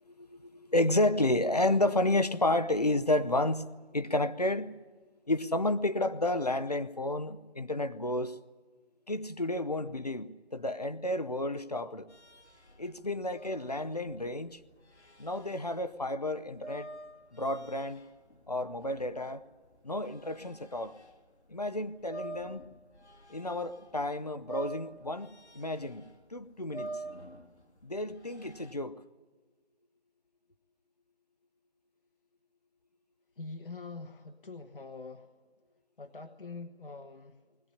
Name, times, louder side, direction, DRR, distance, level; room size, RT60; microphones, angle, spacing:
voice 1, 0.0-4.7 5.3-8.4 9.1-12.1 12.8-14.6 15.2-16.9 17.3-18.0 18.5-19.4 19.8-20.9 21.5-22.6 23.3-27.0 27.8-28.9, left 1 dB, 35° left, 12 dB, 0.8 m, -31 dB
sound 1, 12.1-21.2 21.6-24.0 24.3-28.7, right 2 dB, 90° left, 2.6 m, -47 dB
voice 2, 33.4-35.3 36.0-37.4, left 3 dB, 55° left, 6 dB, 1.2 m, -44 dB
21.0 x 17.5 x 9.9 m, 1.3 s
figure-of-eight pair, 175°, 33 cm